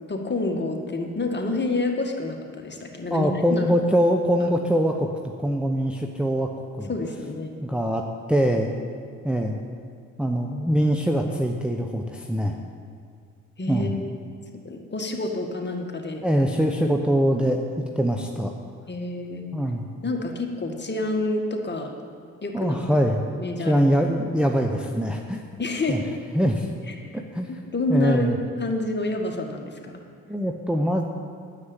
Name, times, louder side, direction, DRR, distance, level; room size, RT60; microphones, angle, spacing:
voice 1, 0.1-3.7 6.9-7.6 13.6-14.1 14.6-16.2 18.9-19.5 20.0-21.9 22.4-22.7 23.4-23.9 25.6-26.2 26.9-27.1 27.5-30.0, left 2 dB, 25° left, 2 dB, 1.8 m, -28 dB
voice 2, 3.1-5.1 5.4-6.5 6.8-6.9 7.6-8.0 8.3-8.7 9.2-9.6 10.2-12.6 13.7-14.0 16.2-18.5 19.5-19.9 22.5-23.2 23.7-25.4 25.9-26.0 26.3-26.7 27.1-27.5 27.9-28.4 30.3-31.0, equal, 5° right, 2 dB, 0.9 m, -23 dB
9.7 x 7.6 x 8.3 m, 2.2 s
hypercardioid pair, 50°, 39 cm